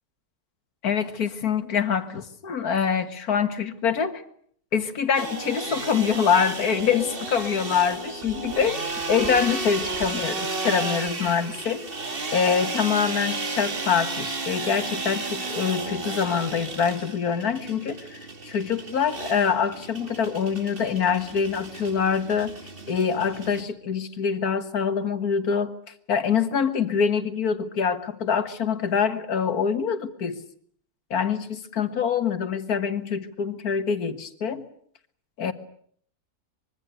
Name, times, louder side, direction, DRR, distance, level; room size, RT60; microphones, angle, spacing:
voice 1, 0.8-4.2 4.7-11.8 12.3-18.2 18.4-22.5 22.9-25.8 26.1-30.4 31.1-34.6 35.4-35.5, left 6 dB, 85° left, 11 dB, 2.1 m, -25 dB
sound 1, 5.1-23.6, right 3 dB, 40° right, 2.1 m, -33 dB
25.0 x 22.5 x 8.1 m, 0.62 s
omnidirectional pair, 1.6 m